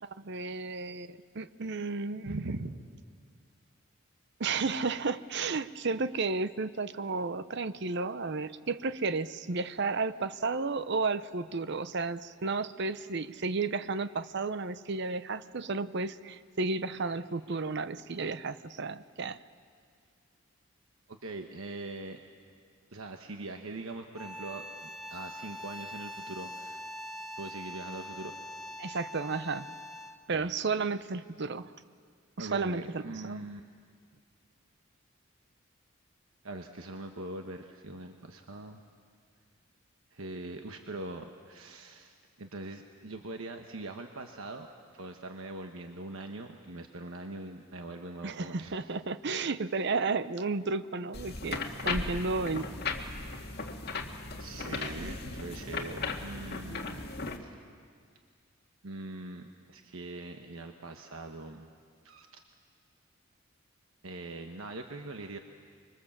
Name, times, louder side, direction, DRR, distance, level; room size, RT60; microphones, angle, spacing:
voice 1, 0.0-2.5 4.4-19.4 28.8-29.7 30.3-31.7 32.4-33.4 48.2-52.8 55.0-55.1, right 4 dB, 55° right, 14 dB, 0.7 m, -33 dB
voice 2, 2.3-2.8 21.1-22.2 22.9-24.6 25.1-26.8 27.4-28.3 30.3-30.5 32.4-33.6 36.4-38.8 40.1-44.7 44.9-48.7 49.2-49.5 54.4-57.0 57.4-57.6 58.8-61.7 62.0-62.4 64.0-65.4, right 2 dB, 85° right, 4 dB, 1.2 m, -42 dB
sound 1, 24.1-30.3, left 1 dB, ahead, 1.0 m, -43 dB
sound 2, 51.1-57.4, left 3 dB, 50° left, 1.9 m, -36 dB
25.0 x 23.5 x 7.3 m, 2.1 s
head